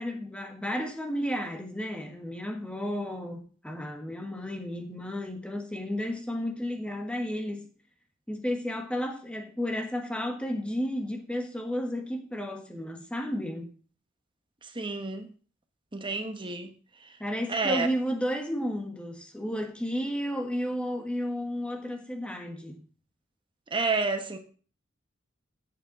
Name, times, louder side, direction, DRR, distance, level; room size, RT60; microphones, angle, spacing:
voice 1, 0.0-7.7 8.3-13.7 17.2-22.8, equal, 5° left, 1.6 m, -32 dB
voice 2, 14.7-15.3 15.9-16.7 17.5-17.9 23.7-24.4, right 3 dB, 25° right, 1.3 m, -29 dB
8.0 x 6.9 x 6.2 m
head